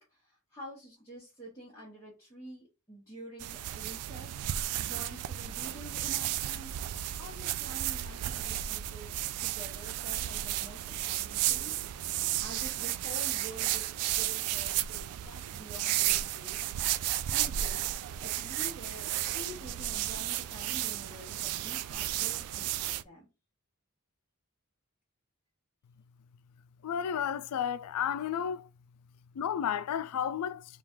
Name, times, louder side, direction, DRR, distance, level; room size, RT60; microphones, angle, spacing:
voice 1, 0.0-6.7 7.2-11.8 12.1-16.6 17.1-23.3, right 1 dB, 15° left, 1.1 m, -48 dB
sound 1, 3.4-23.0, right 13 dB, 85° right, 0.3 m, -33 dB
voice 2, 26.8-28.7 29.3-30.8, left 8 dB, 90° left, 0.3 m, -32 dB
3.8 x 2.3 x 4.4 m
head